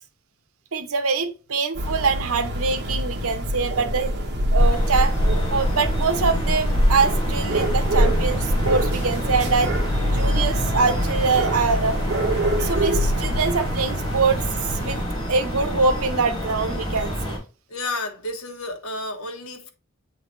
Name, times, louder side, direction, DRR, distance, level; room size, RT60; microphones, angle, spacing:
voice 1, 0.7-5.1 5.5-9.7 10.1-12.0 12.5-14.4 14.8-15.0 15.3-17.4, right 4 dB, 85° right, 0.9 m, -24 dB
sound 1, 1.8-15.0, equal, 50° right, 1.5 m, -24 dB
sound 2, 4.6-17.4, equal, 20° left, 2.1 m, -28 dB
voice 2, 17.7-19.7, left 2 dB, 80° left, 1.4 m, -31 dB
7.9 x 4.0 x 3.2 m
head